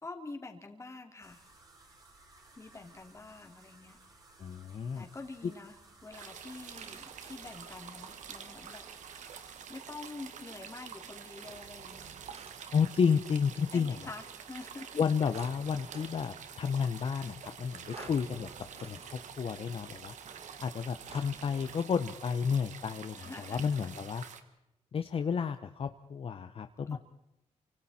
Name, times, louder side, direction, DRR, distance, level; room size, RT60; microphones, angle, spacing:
voice 1, 0.0-1.4 2.6-4.0 4.9-5.8 6.0-8.8 9.7-12.1 13.7-15.0 17.9-18.1 23.1-23.9 26.9-27.0, left 3 dB, 25° left, 3 dB, 3.1 m, -46 dB
sound 1, 1.2-9.6, right 2 dB, 30° right, 6.3 m, -59 dB
voice 2, 4.4-5.1 5.4-5.5 12.7-14.0 15.0-18.5 18.8-20.1 20.6-24.2 24.9-27.0, left 6 dB, 50° left, 8 dB, 0.9 m, -31 dB
sound 2, 6.1-24.4, right 7 dB, 90° right, 1.8 m, -48 dB
sound 3, 6.7-21.8, right 6 dB, 55° right, 1.5 m, -54 dB
28.5 x 25.5 x 4.3 m, 0.89 s
cardioid pair, 115°, 12 cm